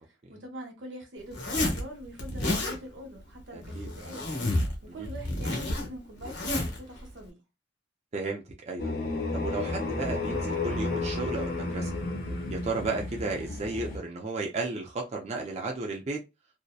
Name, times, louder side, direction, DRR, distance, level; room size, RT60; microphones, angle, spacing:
voice 1, 0.3-4.3 4.8-7.4, right 1 dB, 85° right, 0.9 m, -44 dB
Zipper (clothing), 1.3-1.8 2.2-2.8 3.6-4.8 5.0-6.8, left 1 dB, 80° left, 1.0 m, -30 dB
voice 2, 3.5-3.9 4.9-5.1 8.1-8.9 9.3-11.9 12.5-16.2, right 3 dB, 35° right, 0.4 m, -34 dB
sound 1, 8.8-14.0, left 3 dB, 55° left, 0.6 m, -32 dB
2.6 x 2.0 x 2.3 m
head